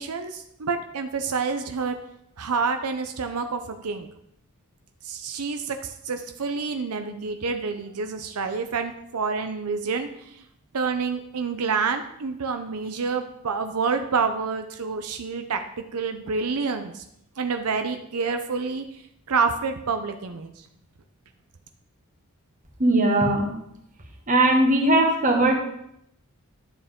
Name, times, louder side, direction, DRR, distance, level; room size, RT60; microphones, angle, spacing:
voice 1, 0.0-2.0 2.4-4.1 5.0-10.4 10.7-17.0 17.4-18.8 19.3-20.5, right 5 dB, 90° right, 7 dB, 0.7 m, -28 dB
voice 2, 22.8-23.5 24.3-25.5, right 1 dB, 35° right, 2 dB, 1.6 m, -19 dB
11.0 x 7.1 x 3.7 m, 0.77 s
head